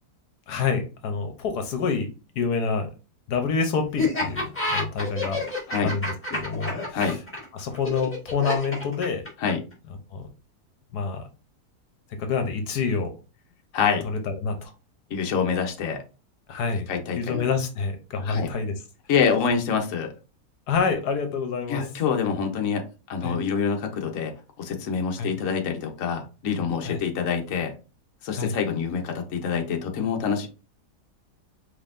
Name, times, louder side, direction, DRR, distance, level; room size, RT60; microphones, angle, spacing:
voice 1, 0.5-2.1 2.4-2.9 3.3-5.4 5.8-7.2 7.5-9.2 10.1-10.2 10.9-11.2 12.2-13.1 14.0-14.7 16.5-16.9 17.2-18.8 20.7-21.8 23.2-23.4 25.2-25.3 26.8-27.0 28.3-28.5, left 5 dB, 75° left, 6 dB, 1.4 m, -27 dB
Laughter, 4.0-9.7, left 2 dB, 10° left, 1.8 m, -28 dB
voice 2, 13.7-14.0 15.1-16.0 16.9-17.5 18.2-18.5 19.1-20.1 21.7-24.3 24.6-27.7 28.2-30.5, left 6 dB, 60° left, 3 dB, 1.2 m, -26 dB
5.4 x 3.4 x 2.6 m, 0.31 s
omnidirectional pair, 1.7 m